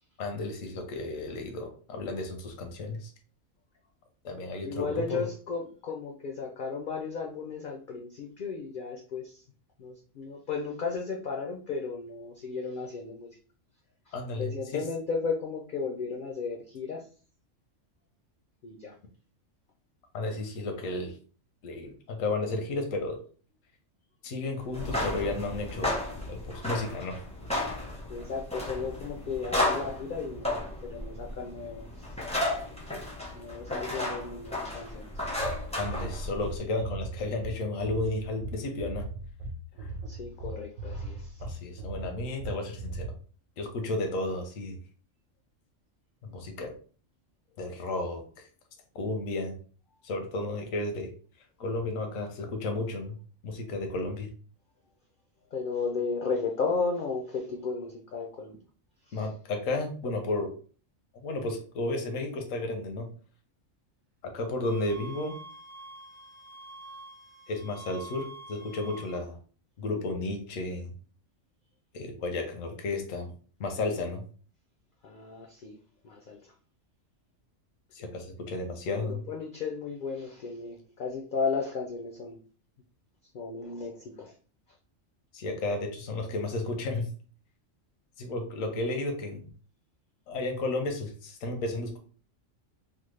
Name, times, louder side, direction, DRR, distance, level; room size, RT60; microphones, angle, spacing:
voice 1, 0.2-3.1 4.2-5.3 14.1-14.8 20.1-21.1 21.6-23.2 24.2-25.9 26.3-27.2 35.7-39.1 39.8-39.9 41.4-43.1 43.6-44.8 46.2-46.7 47.6-48.2 48.9-49.5 50.0-51.1 51.6-53.1 53.4-54.3 59.1-60.5 61.2-63.1 64.2-65.4 67.5-69.4 69.8-70.9 71.9-73.3 73.6-74.2 77.9-79.2 85.3-87.1 88.2-89.5 90.3-92.0, left 2 dB, 85° left, 4 dB, 1.1 m, -33 dB
voice 2, 4.6-9.4 9.8-13.4 14.1-17.1 18.6-18.9 28.1-32.1 33.3-35.1 40.1-41.4 55.5-58.5 59.1-59.2 75.0-75.8 76.0-76.5 78.9-82.4 83.3-84.3, left 4 dB, 65° left, 1 dB, 0.5 m, -34 dB
sound 1, 24.7-36.6, left 1 dB, 10° left, 0.4 m, -33 dB
sound 2, 35.2-43.1, right 2 dB, 90° right, 1.1 m, -38 dB
sound 3, 64.6-69.2, right 2 dB, 50° right, 0.4 m, -46 dB
3.3 x 2.1 x 3.1 m, 0.41 s
omnidirectional pair, 1.3 m